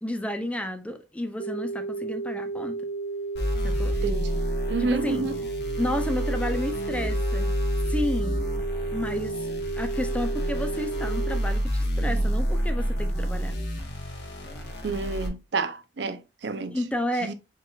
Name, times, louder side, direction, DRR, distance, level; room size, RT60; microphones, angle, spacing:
voice 1, 0.0-2.8 3.6-4.0 4.8-5.2 5.8-7.5 7.9-8.4 8.9-13.6 16.7-17.3, left 1 dB, 5° left, 0.5 m, -31 dB
sound 1, 1.4-11.4, right 3 dB, 35° left, 1.3 m, -33 dB
sound 2, 3.3-15.3, equal, 70° left, 1.5 m, -29 dB
voice 2, 4.0-4.4 4.7-5.4 14.8-16.8 17.2-17.3, right 3 dB, 75° right, 0.6 m, -30 dB
4.7 x 4.5 x 2.4 m
head